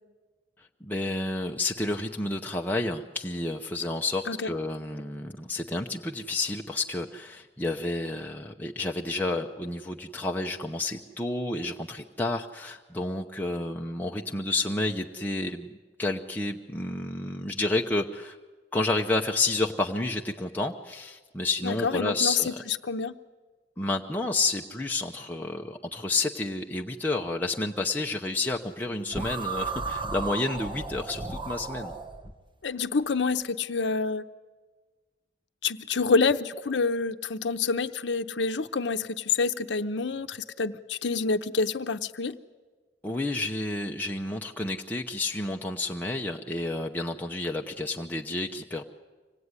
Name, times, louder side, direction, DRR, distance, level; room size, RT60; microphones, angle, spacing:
voice 1, 0.8-15.7 16.0-18.4 18.7-22.6 23.8-31.9 43.0-48.8, left 2 dB, 10° left, 1 dB, 0.7 m, -30 dB
voice 2, 21.6-23.1 32.6-34.2 35.6-42.4, left 4 dB, 75° left, 10 dB, 0.7 m, -27 dB
sound 1, 29.1-32.3, right 3 dB, 25° right, 1.4 m, -34 dB
25.0 x 18.0 x 9.7 m, 1.4 s
head